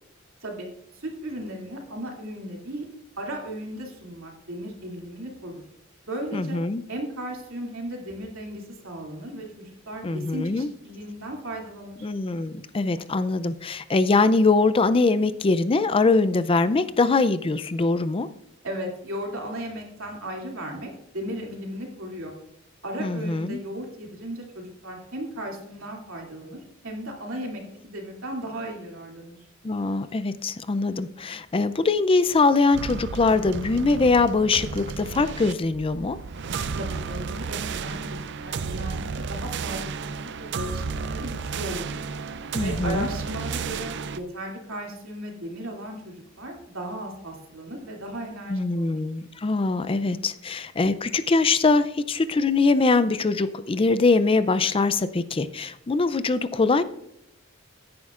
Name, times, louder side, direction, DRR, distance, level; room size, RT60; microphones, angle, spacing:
voice 1, 0.9-2.9 3.2-5.6 6.0-6.6 6.9-12.1 18.6-22.4 22.8-29.5 36.7-41.9 42.6-49.0, right 1 dB, 85° right, 0 dB, 2.7 m, -36 dB
voice 2, 6.3-6.8 10.0-10.7 12.0-18.3 23.0-23.6 29.6-36.2 42.5-43.1 48.5-56.8, left 3 dB, 25° left, 13 dB, 0.4 m, -22 dB
sound 1, 32.7-44.2, right 5 dB, 60° right, 0.5 m, -32 dB
15.5 x 9.6 x 2.5 m, 0.77 s
head